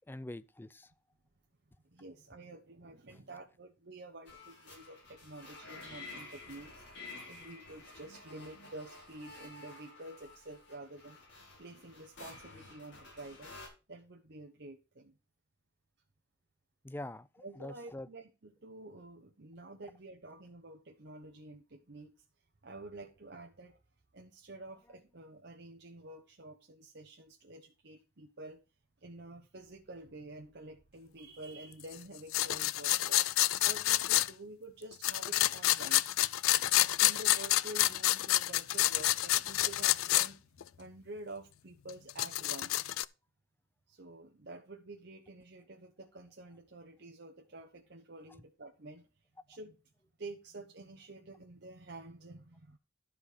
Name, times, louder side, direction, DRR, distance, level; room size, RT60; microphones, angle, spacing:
voice 1, 0.1-0.9 16.8-18.1, left 1 dB, 10° left, 0.4 m, -44 dB
voice 2, 1.9-6.8 7.3-11.2 11.6-13.5 13.9-15.2 17.4-22.1 22.6-23.8 24.1-28.6 29.0-33.3 33.6-36.0 36.5-36.6 37.0-40.4 40.8-42.9 43.9-49.1 49.5-49.8 50.2-52.8, right 2 dB, 55° right, 1.0 m, -49 dB
sound 1, 4.3-13.7, left 3 dB, 55° left, 5.2 m, -51 dB
sound 2, 32.3-34.3 35.0-40.3 40.6-40.7 41.9-43.0, left 16 dB, 85° left, 0.4 m, -28 dB
12.0 x 5.0 x 5.0 m
head